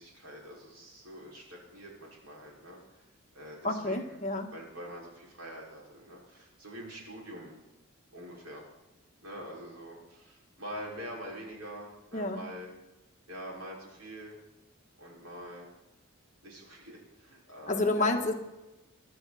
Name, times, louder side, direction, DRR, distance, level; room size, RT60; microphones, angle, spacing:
voice 1, 0.0-3.0 3.3-4.2 4.5-7.6 8.1-8.7 9.2-12.7 13.3-14.4 15.0-15.7 16.4-18.2, equal, 90° right, -3 dB, 5.5 m, -45 dB
voice 2, 3.6-4.5 12.1-12.4 17.7-18.3, left 2 dB, 35° left, 3 dB, 1.6 m, -29 dB
21.0 x 12.5 x 4.3 m, 0.97 s
head